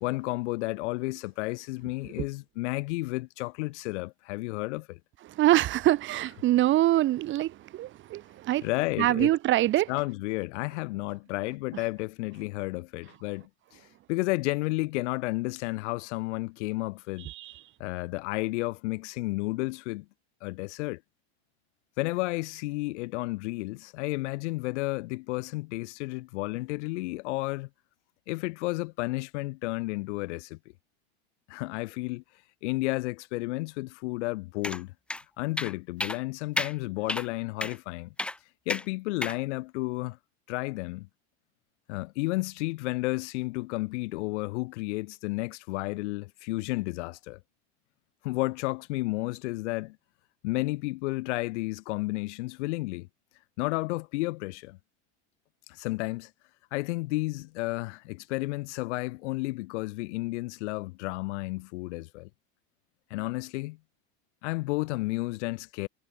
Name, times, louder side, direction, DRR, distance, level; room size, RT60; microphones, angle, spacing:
voice 1, 0.0-5.0 8.6-9.3 9.9-17.3 17.8-20.1 20.4-21.0 22.0-27.7 28.3-30.6 31.5-32.2 32.6-34.9 35.4-38.1 38.7-40.2 40.5-41.1 41.9-47.4 48.2-50.0 50.4-53.1 53.6-54.8 55.7-56.3 56.7-62.3 63.1-63.8 64.4-65.9, left 22 dB, 80° left, 2.3 m, -32 dB
voice 2, 5.2-10.1 11.7-11.8 17.2-17.6, right 15 dB, 35° right, 5.0 m, -25 dB
sound 1, 34.6-34.8 35.1-35.2 35.6-35.7 36.0-36.2 36.6-36.7 37.1-37.3 37.6-37.8 38.2-38.4 38.7-38.8 39.2-39.4, left 2 dB, 5° left, 0.7 m, -31 dB
cardioid pair, 180°, 35 cm